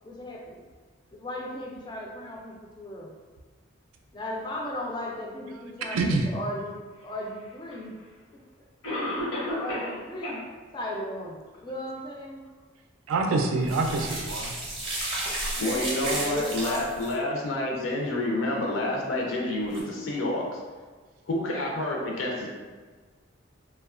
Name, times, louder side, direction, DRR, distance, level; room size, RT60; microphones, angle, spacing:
voice 1, 0.0-0.6 1.1-3.2 4.1-7.9 8.9-9.0 9.4-10.4 10.7-12.4 15.5-17.4, left 1 dB, 20° left, -1 dB, 0.3 m, -36 dB
voice 2, 5.9-6.3 13.1-14.5, right 3 dB, 90° right, 3 dB, 0.3 m, -25 dB
Cough, 7.7-7.8 8.8-10.0 10.2-10.3 10.9-11.0 11.5-11.6, left 1 dB, 90° left, 1.0 m, -31 dB
sound 1, 13.6-17.1 19.7-19.8, right 1 dB, 25° right, 0.6 m, -33 dB
voice 3, 15.6-20.6 21.3-22.5, left 1 dB, 75° left, -1 dB, 0.5 m, -28 dB
2.8 x 2.2 x 2.4 m, 1.4 s
head